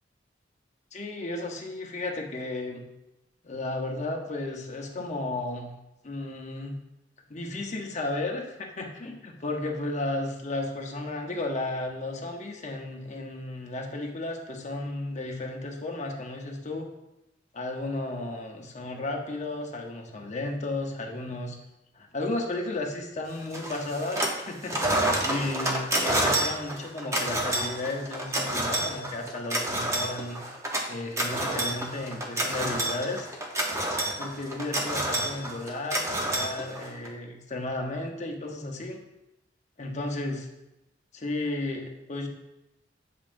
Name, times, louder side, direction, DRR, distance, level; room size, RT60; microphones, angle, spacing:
voice 1, 0.9-2.8 3.4-5.7 6.0-6.8 7.3-16.9 17.5-21.6 21.9-24.8 25.2-30.4 30.9-33.4 34.2-39.0 39.8-40.5 41.1-42.3, left 2 dB, 40° left, 2 dB, 0.8 m, -33 dB
sound 1, 23.5-24.4 24.7-37.1, right 1 dB, 15° right, 0.8 m, -29 dB
7.4 x 5.5 x 2.6 m, 0.93 s
head